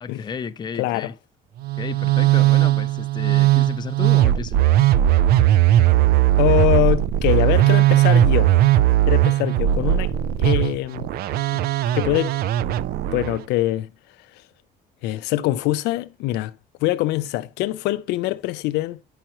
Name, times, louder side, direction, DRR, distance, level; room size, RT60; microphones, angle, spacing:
voice 1, 0.0-1.1 1.8-4.6, left 6 dB, 25° left, 0.5 m, -32 dB
voice 2, 0.8-1.1 6.4-8.5 9.1-10.1 10.4-11.1 11.5-11.6 11.9-12.4 13.1-13.9 15.0-16.5 16.8-19.0, left 16 dB, 90° left, 0.4 m, -23 dB
Musical instrument, 1.6-13.4, right 13 dB, 65° right, 0.4 m, -18 dB
8.8 x 5.6 x 2.9 m
cardioid pair, 110°, 17 cm